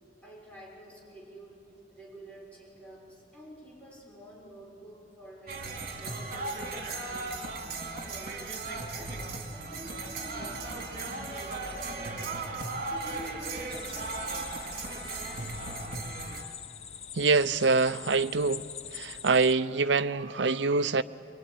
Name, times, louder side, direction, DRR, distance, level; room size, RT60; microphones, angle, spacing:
voice 1, 0.2-8.5 8.9-12.4 12.8-15.6, equal, 10° left, 6.3 m, -49 dB
sound 1, 5.5-16.4, right 3 dB, 55° right, 2.7 m, -36 dB
sound 2, 13.7-19.5, left 8 dB, 35° left, 0.7 m, -44 dB
voice 2, 17.1-18.7 18.9-21.0, right 4 dB, 85° right, 0.7 m, -25 dB
23.5 x 23.0 x 9.9 m
head